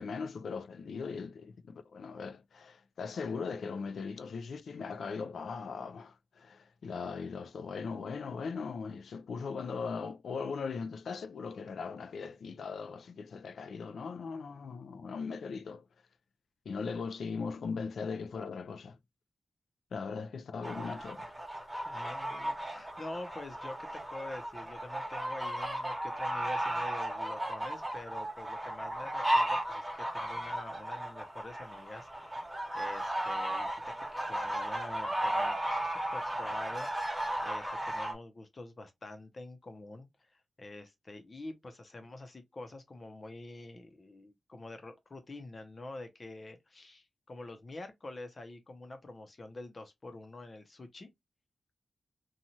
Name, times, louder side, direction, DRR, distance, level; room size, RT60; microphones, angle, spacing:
voice 1, 0.0-15.8 16.7-19.0 19.9-21.3, left 5 dB, 85° left, 0.3 m, -39 dB
sound 1, 20.6-38.1, right 1 dB, 5° right, 1.0 m, -35 dB
voice 2, 21.8-51.1, left 2 dB, 35° left, 0.6 m, -47 dB
2.7 x 2.3 x 2.9 m
wide cardioid pair, 135°, 0 cm